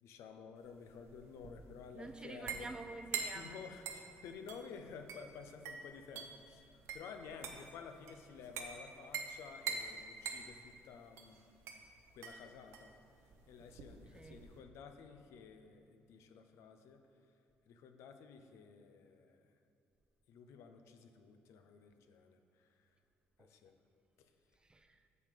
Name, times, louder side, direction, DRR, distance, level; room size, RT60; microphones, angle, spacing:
voice 1, 0.0-2.7 3.3-11.4 12.1-12.9 13.5-17.0 17.7-19.4 20.3-22.7 23.4-23.7 24.2-24.3, left 6 dB, 75° left, 7 dB, 0.6 m, -53 dB
sound 1, 0.6-14.6, right 6 dB, 75° right, 0.8 m, -46 dB
voice 2, 1.9-3.6 14.1-14.4 23.4-23.5 24.6-25.0, right 2 dB, 20° right, 8 dB, 0.5 m, -49 dB
6.8 x 6.7 x 5.0 m, 2.7 s
supercardioid pair, 80°, 5 cm